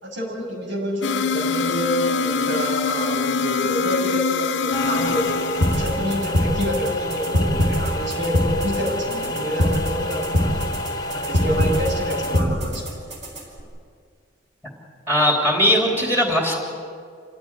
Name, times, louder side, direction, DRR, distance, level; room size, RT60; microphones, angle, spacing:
voice 1, 0.0-10.7 11.1-12.8, equal, 70° right, -1 dB, 6.7 m, -27 dB
sound 1, 1.0-6.3, left 5 dB, 65° left, 0.8 m, -24 dB
sound 2, 4.7-12.4, left 1 dB, 20° left, 1.3 m, -29 dB
sound 3, 5.6-13.6, equal, 35° right, 4.8 m, -24 dB
voice 2, 15.1-16.5, left 1 dB, 10° right, 0 dB, 3.3 m, -19 dB
27.0 x 16.0 x 9.9 m, 2.2 s
head